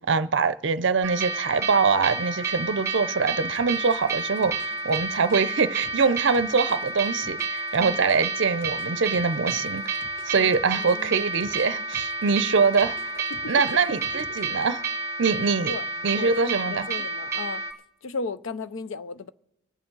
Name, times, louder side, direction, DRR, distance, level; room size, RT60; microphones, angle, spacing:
voice 1, 0.0-14.8 15.2-15.7 16.0-16.9, right 5 dB, 60° right, 0.6 m, -24 dB
sound 1, 1.0-17.7, right 4 dB, 15° right, 1.8 m, -30 dB
sound 2, 3.5-8.2 8.6-11.7 11.9-14.6, right 1 dB, 10° left, 1.7 m, -50 dB
voice 2, 10.3-11.3 12.6-12.7 13.3-13.5 15.7-15.8 16.1-17.6 18.0-19.3, left 3 dB, 70° left, 0.6 m, -36 dB
24.5 x 8.6 x 3.9 m
head